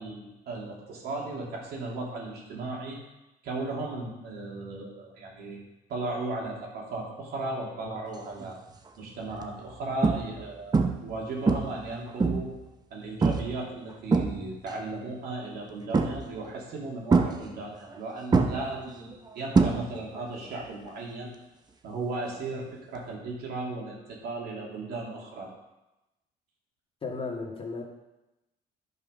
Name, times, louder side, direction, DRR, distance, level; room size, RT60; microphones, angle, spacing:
voice 1, 0.0-3.0 3.4-5.6 5.9-8.6 9.0-12.5 12.9-21.3 21.8-25.5, right 2 dB, 70° right, -2 dB, 2.9 m, -36 dB
sound 1, 8.4-8.7 9.3-9.4 10.0-10.5 10.7-11.1 11.5-12.6 13.2-13.6 13.9-14.7 15.9-16.5 17.1-18.0 18.3-20.2 20.5-20.9 23.0-23.1, right 4 dB, 25° right, 0.9 m, -25 dB
voice 2, 27.0-27.8, left 4 dB, 35° left, 0 dB, 2.0 m, -34 dB
11.0 x 5.5 x 5.3 m, 0.99 s
cardioid pair, 110°, 17 cm